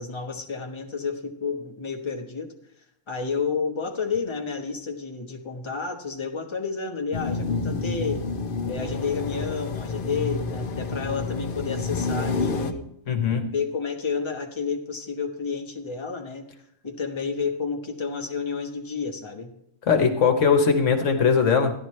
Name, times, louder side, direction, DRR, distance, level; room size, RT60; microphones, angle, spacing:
voice 1, 0.0-2.5 3.1-8.3 8.7-12.9 13.5-16.4 16.8-19.5, left 5 dB, 25° left, 2 dB, 1.1 m, -30 dB
sound 1, 7.1-12.7, left 4 dB, 50° left, 0.8 m, -29 dB
voice 2, 13.1-13.5 19.9-21.7, left 6 dB, 70° left, 5 dB, 1.4 m, -20 dB
13.5 x 11.0 x 3.2 m, 0.73 s
omnidirectional pair, 1.4 m